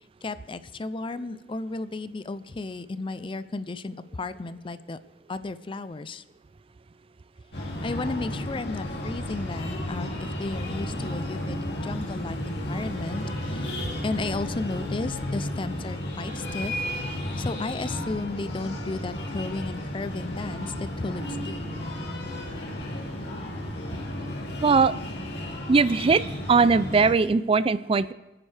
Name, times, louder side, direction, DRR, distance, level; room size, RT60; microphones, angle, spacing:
voice 1, 0.2-5.0 5.3-6.2 7.6-16.8 17.3-21.7 22.6-22.7, left 3 dB, 30° left, 14 dB, 0.5 m, -34 dB
Breathing, 7.5-27.1, left 1 dB, 70° left, 2.6 m, -33 dB
voice 2, 24.6-24.9 25.7-26.2 26.5-28.1, right 4 dB, 30° right, 16 dB, 0.4 m, -20 dB
27.5 x 9.7 x 3.4 m, 1.0 s
head